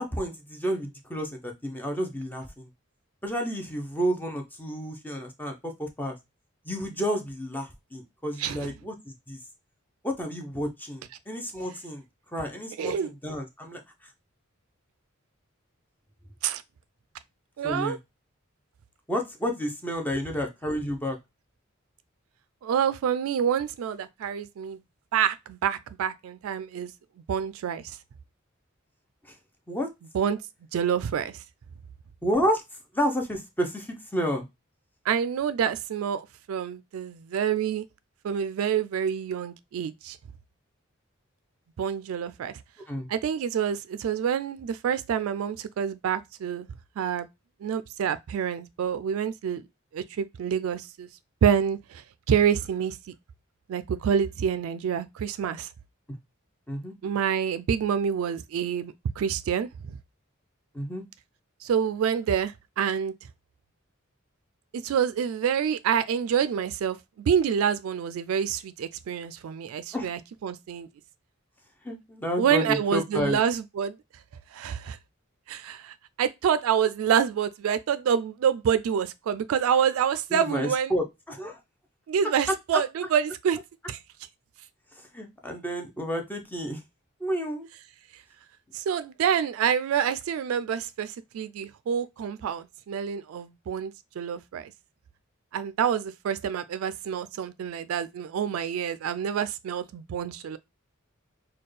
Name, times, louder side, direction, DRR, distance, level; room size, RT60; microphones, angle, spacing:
voice 1, 0.0-2.7 3.2-6.2 6.6-9.4 10.0-12.0 12.3-14.1 17.6-18.0 19.1-21.2 29.2-29.4 29.7-29.9 32.2-32.6 32.9-34.5 42.9-43.1 56.7-56.9 60.7-61.0 69.9-70.1 71.8-73.4 80.3-81.6 82.5-82.6 85.0-86.8 87.2-87.7, equal, 10° left, 0.6 m, -30 dB
voice 2, 12.8-13.1 16.4-16.6 17.6-18.0 22.6-24.8 25.1-26.9 27.3-27.8 30.1-30.4 30.7-31.4 35.1-37.8 38.2-40.2 41.8-42.5 43.1-46.7 47.0-47.3 47.6-49.6 49.9-51.1 51.4-53.0 53.7-55.7 57.0-59.7 61.6-63.1 64.8-70.9 72.4-73.9 74.5-75.0 75.5-80.9 82.1-83.6 83.9-84.0 88.7-94.7 95.5-100.6, right 8 dB, 80° right, 0.3 m, -27 dB
4.2 x 2.3 x 3.2 m
head